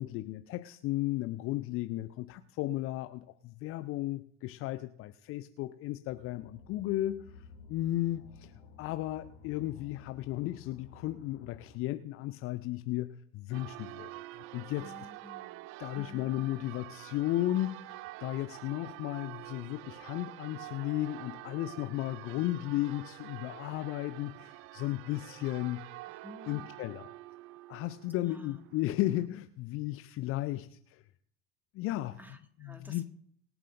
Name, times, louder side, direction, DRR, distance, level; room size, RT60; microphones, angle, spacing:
voice 1, 0.0-8.5 8.8-14.9 15.8-25.9 26.5-27.1 27.7-31.0 31.7-32.2 32.6-33.0, left 15 dB, 40° left, 12 dB, 0.6 m, -35 dB
sound 1, 6.1-11.8, left 5 dB, 65° left, 2.0 m, -54 dB
Church bell, 13.5-29.3, right 19 dB, 40° right, 0.4 m, -47 dB
voice 2, 14.8-15.6 15.9-16.4 26.2-26.7 28.2-28.6 32.2-33.0, left 2 dB, 5° right, 5 dB, 2.1 m, -50 dB
24.5 x 9.0 x 2.7 m, 0.64 s
figure-of-eight pair, 70°, 34 cm